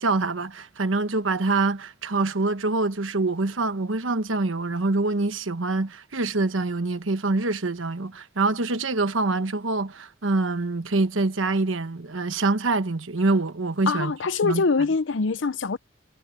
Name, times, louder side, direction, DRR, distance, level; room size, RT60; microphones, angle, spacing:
voice 1, 0.0-14.1 14.4-14.6, right 3 dB, 85° right, 1.2 m, -25 dB
voice 2, 13.9-15.8, left 4 dB, 70° left, 0.6 m, -24 dB
head